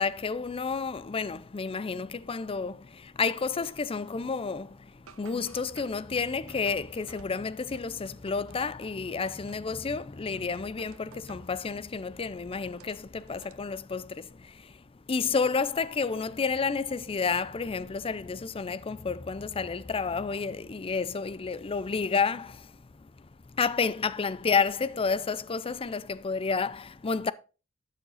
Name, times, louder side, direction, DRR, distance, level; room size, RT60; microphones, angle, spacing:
voice 1, 0.0-27.3, left 5 dB, 25° left, 0.4 m, -31 dB
sound 1, 3.6-4.7 5.1-9.9 10.3-11.6 12.0-13.5, right 5 dB, 65° right, 0.8 m, -56 dB
12.5 x 6.5 x 4.0 m
head